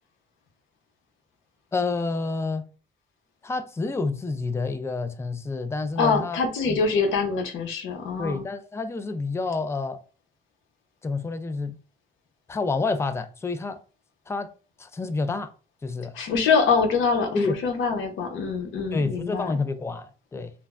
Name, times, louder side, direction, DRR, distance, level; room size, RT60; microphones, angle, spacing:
voice 1, 1.7-2.7 3.4-6.4 6.7-6.8 8.2-10.0 11.0-11.8 12.5-13.8 14.3-14.5 14.8-15.5 15.8-16.1 17.3-17.5 18.9-20.5, left 3 dB, 15° left, 0.3 m, -28 dB
voice 2, 6.0-8.5 16.1-19.5, left 5 dB, 80° left, 0.7 m, -24 dB
3.3 x 2.0 x 2.4 m
cardioid pair, 90°, 20 cm